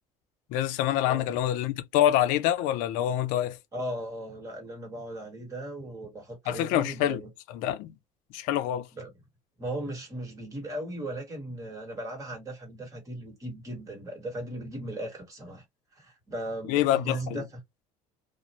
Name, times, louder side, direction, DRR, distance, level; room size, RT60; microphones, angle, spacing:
voice 1, 0.5-3.6 6.5-7.2 7.5-7.9 8.3-8.9 16.7-17.4, left 12 dB, 90° left, 0.5 m, -26 dB
voice 2, 3.7-7.3 8.9-9.1 9.6-15.6 16.0-17.6, right 1 dB, 25° right, 1.3 m, -37 dB
2.5 x 2.1 x 2.8 m
cardioid pair, 145°, 13 cm